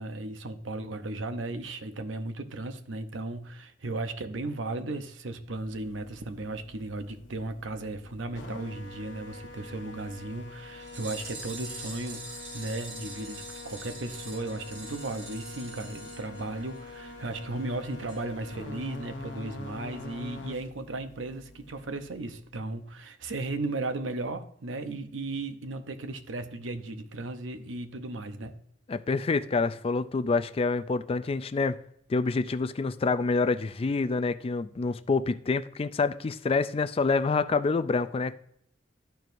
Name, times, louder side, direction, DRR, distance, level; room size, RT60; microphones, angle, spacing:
voice 1, 0.0-28.6, right 2 dB, 85° right, 0.8 m, -36 dB
sound 1, 5.4-22.7, left 2 dB, 70° left, 1.2 m, -45 dB
sound 2, 10.8-17.0 17.2-17.3 17.6-17.7 18.1-18.2 18.5-18.6, right 2 dB, 65° right, 2.3 m, -44 dB
voice 2, 28.9-31.8 32.1-38.3, left 4 dB, 30° left, 0.3 m, -27 dB
12.5 x 4.6 x 2.6 m
head